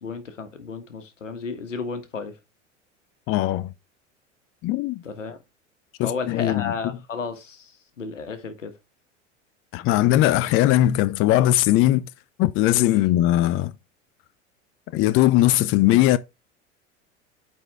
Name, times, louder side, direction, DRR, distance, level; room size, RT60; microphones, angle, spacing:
voice 1, 0.0-2.3 5.0-5.4 6.0-8.7, left 5 dB, 85° left, 1.5 m, -33 dB
voice 2, 3.3-3.7 4.6-5.0 6.0-6.7 9.7-12.1 12.4-13.7 14.9-16.2, left 14 dB, 35° left, 0.5 m, -19 dB
8.8 x 4.3 x 3.4 m
figure-of-eight pair, 80°, 37 cm